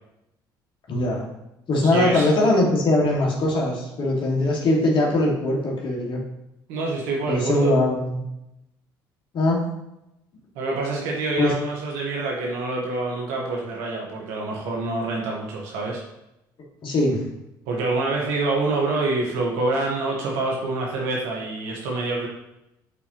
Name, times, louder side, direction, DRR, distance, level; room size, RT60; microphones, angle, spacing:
voice 1, 0.9-1.3 1.7-6.2 7.3-8.2 9.3-9.6 11.4-11.5 16.8-17.2, left 1 dB, 50° left, -2 dB, 2.1 m, -21 dB
voice 2, 1.8-2.3 6.7-7.7 10.5-16.0 17.7-22.3, right 3 dB, 75° right, -2 dB, 1.4 m, -26 dB
8.2 x 4.3 x 3.1 m, 0.87 s
hypercardioid pair, 60°, 11 cm